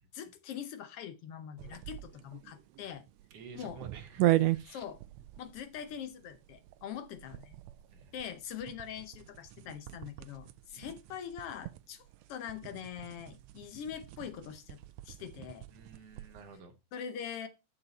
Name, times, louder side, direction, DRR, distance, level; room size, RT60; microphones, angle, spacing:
voice 1, 0.1-3.0 3.5-3.8 4.7-5.0 5.4-7.6 8.1-14.8 15.0-15.7 16.9-17.5, left 8 dB, 70° left, 1.4 m, -43 dB
sound 1, 1.6-16.5, right 17 dB, 75° right, 1.6 m, -38 dB
voice 2, 3.3-4.8 7.9-8.1 10.8-10.9 15.7-16.8, right 5 dB, 60° right, 2.1 m, -51 dB
8.6 x 6.7 x 4.1 m
omnidirectional pair, 3.4 m